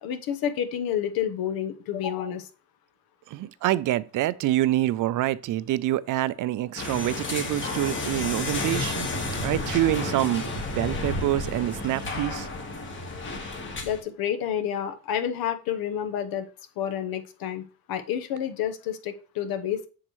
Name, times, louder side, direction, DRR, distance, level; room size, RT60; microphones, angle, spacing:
voice 1, 0.0-2.5 13.8-16.5 16.8-17.6 17.9-19.9, left 9 dB, 70° left, 1.0 m, -29 dB
voice 2, 3.3-9.1 9.4-12.5, right 14 dB, 55° right, 0.5 m, -26 dB
sound 1, 6.8-14.0, left 2 dB, 30° left, 1.4 m, -31 dB
7.4 x 6.5 x 3.1 m
cardioid pair, 140°, 38 cm